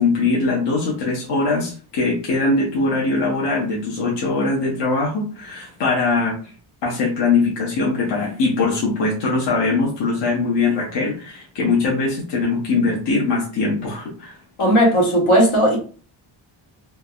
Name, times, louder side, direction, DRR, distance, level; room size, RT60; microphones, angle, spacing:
voice 1, 0.0-6.4 6.8-14.4, left 3 dB, 60° left, 0.8 m, -21 dB
voice 2, 14.6-15.8, equal, 85° left, 1.3 m, -15 dB
3.3 x 2.0 x 2.3 m
wide cardioid pair, 150°, 48 cm